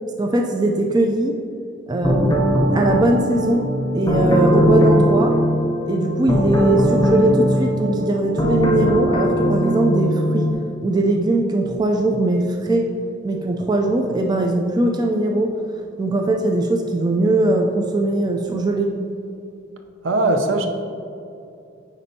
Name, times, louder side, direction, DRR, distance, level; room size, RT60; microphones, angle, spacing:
voice 1, 0.2-1.4 1.9-5.4 5.9-10.5 10.8-13.0 13.2-15.5 16.0-19.0, right 2 dB, 20° right, 2 dB, 0.3 m, -20 dB
sound 1, 2.0-10.5, equal, 20° left, 0.7 m, -19 dB
voice 2, 20.0-20.7, right 2 dB, 70° right, 4 dB, 0.6 m, -19 dB
9.7 x 4.2 x 2.7 m, 2.6 s
head